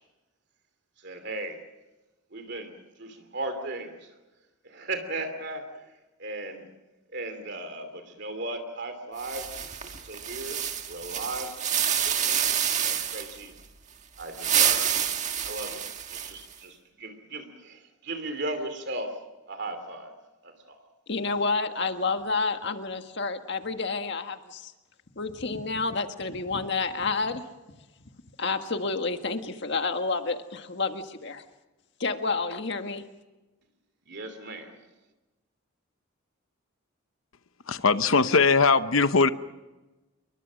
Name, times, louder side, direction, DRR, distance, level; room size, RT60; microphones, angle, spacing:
voice 1, 1.0-1.6 2.3-4.1 4.6-5.9 6.2-6.7 7.1-9.5 9.8-10.6 10.9-11.5 12.0-12.4 12.8-13.5 14.2-15.0 15.4-15.8 16.1-19.2 19.5-20.1 20.4-20.8 34.1-34.8, right 2 dB, 50° right, 7 dB, 2.8 m, -36 dB
sound 1, 9.2-13.4 14.2-16.5, right 9 dB, 35° right, 1.6 m, -28 dB
voice 2, 21.1-24.7 25.1-27.5 28.4-31.4 32.0-33.0, left 4 dB, 55° left, 6 dB, 1.7 m, -29 dB
voice 3, 37.7-39.3, left 4 dB, 70° left, 12 dB, 0.9 m, -20 dB
29.0 x 23.0 x 6.3 m, 1.1 s
head